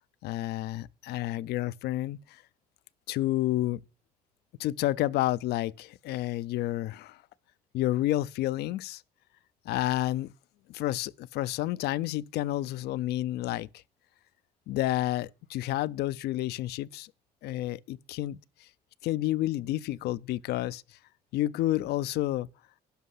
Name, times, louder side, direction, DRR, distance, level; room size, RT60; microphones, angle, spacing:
voice 1, 0.2-2.4 3.1-3.8 4.6-7.2 7.7-9.0 9.7-10.3 10.7-13.7 14.7-17.1 17.4-18.4 19.0-20.8 21.3-22.5, left 15 dB, 75° left, 0.4 m, -30 dB
11.5 x 5.5 x 5.5 m
cardioid pair, 110°, 17 cm